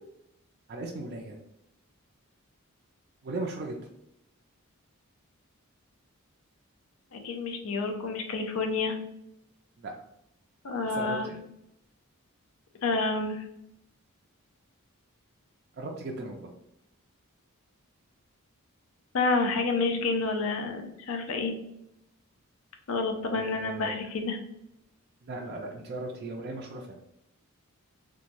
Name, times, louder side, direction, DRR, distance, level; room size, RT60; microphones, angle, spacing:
voice 1, 0.7-1.4 3.2-3.8 9.8-9.9 10.8-11.4 15.7-16.5 23.3-24.1 25.2-27.0, right 2 dB, 45° right, 0 dB, 0.3 m, -37 dB
voice 2, 7.1-9.0 10.6-11.3 12.8-13.4 19.1-21.5 22.9-24.4, left 3 dB, 65° left, 5 dB, 0.5 m, -29 dB
2.9 x 2.2 x 2.5 m, 0.81 s
head